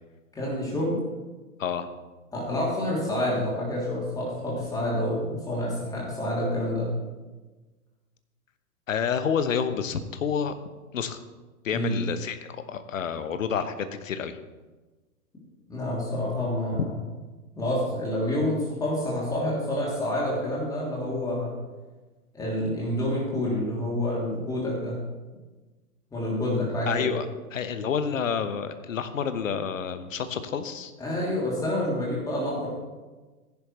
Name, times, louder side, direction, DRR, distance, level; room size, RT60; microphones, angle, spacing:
voice 1, 0.3-1.0 2.3-6.9 11.7-12.0 15.7-16.9 17.5-21.6 22.3-25.0 26.1-27.1 31.0-32.7, left 1 dB, 10° left, -5 dB, 3.0 m, -28 dB
voice 2, 8.9-10.5 10.9-11.2 11.6-14.4 26.9-27.3 27.5-30.9, left 7 dB, 55° left, 11 dB, 1.1 m, -29 dB
15.0 x 10.5 x 3.2 m, 1.2 s
figure-of-eight pair, 110°, 46 cm